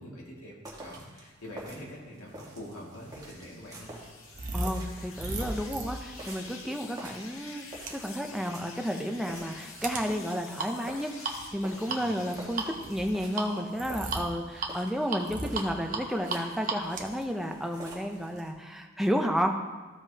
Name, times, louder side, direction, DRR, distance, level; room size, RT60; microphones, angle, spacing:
voice 1, 0.0-3.9 11.9-12.0, equal, 90° left, -4 dB, 2.2 m, -44 dB
sound 1, 0.6-18.5, right 1 dB, 15° right, 1.4 m, -48 dB
sound 2, 2.7-14.3 14.7-15.7, left 4 dB, 65° left, 0.9 m, -49 dB
sound 3, 2.7-18.4, right 3 dB, 35° right, 0.8 m, -38 dB
voice 2, 4.5-19.5, equal, ahead, 3 dB, 0.5 m, -32 dB
14.0 x 5.1 x 2.8 m, 1.3 s
head